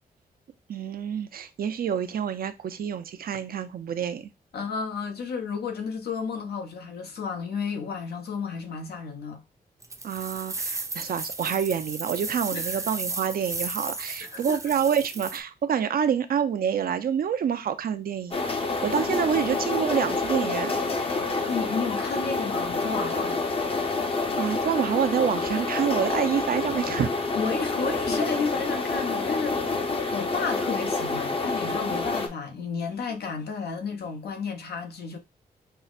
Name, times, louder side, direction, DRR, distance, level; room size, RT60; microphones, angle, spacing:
voice 1, 0.7-4.3 10.0-18.4 18.8-20.7 24.1-27.1 30.0-30.1, right 8 dB, 65° right, 0.5 m, -27 dB
voice 2, 4.5-9.4 12.5-12.8 14.2-14.6 19.0-19.1 21.5-23.4 27.4-35.2, left 5 dB, 75° left, 0.8 m, -32 dB
sound 1, 9.8-15.4, right 3 dB, 20° right, 0.6 m, -34 dB
sound 2, 18.3-32.3, left 3 dB, 35° left, 0.7 m, -28 dB
5.5 x 2.1 x 2.3 m
cardioid pair, 85°, 17 cm